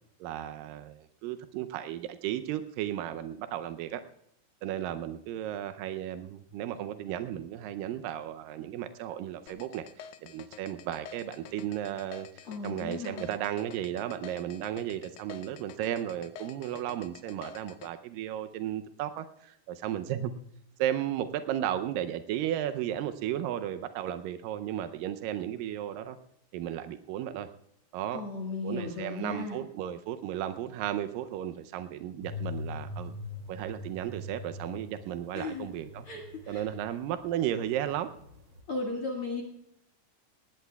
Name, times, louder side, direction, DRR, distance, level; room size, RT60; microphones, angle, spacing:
voice 1, 0.2-4.0 4.6-9.9 10.2-20.3 20.8-26.2 26.5-27.5 27.9-28.2 28.6-33.1 33.5-36.1 36.5-38.1, right 11 dB, 90° right, 9 dB, 1.9 m, -34 dB
sound 1, 9.5-17.9, left 8 dB, 80° left, 2.0 m, -48 dB
voice 2, 12.5-13.2 28.1-29.6 35.3-35.7 36.1-36.6 38.7-39.4, left 3 dB, 50° left, -1 dB, 1.8 m, -35 dB
sound 2, 32.2-37.2 37.5-38.6, left 2 dB, 45° right, 1.5 m, -42 dB
19.0 x 18.0 x 2.3 m, 0.76 s
omnidirectional pair, 4.7 m